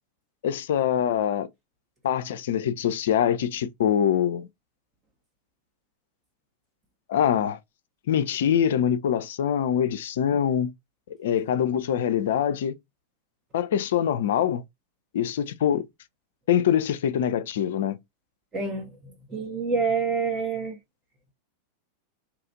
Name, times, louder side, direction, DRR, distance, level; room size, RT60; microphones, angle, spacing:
voice 1, 0.4-1.5 2.0-4.5 7.1-7.6 8.1-10.7 11.1-12.7 13.5-14.6 15.1-15.8 16.5-18.0, left 9 dB, 60° left, 0.3 m, -24 dB
voice 2, 18.5-18.9 19.3-20.8, right 4 dB, 25° right, 0.7 m, -27 dB
2.8 x 2.4 x 2.6 m
figure-of-eight pair, 90°, 0 cm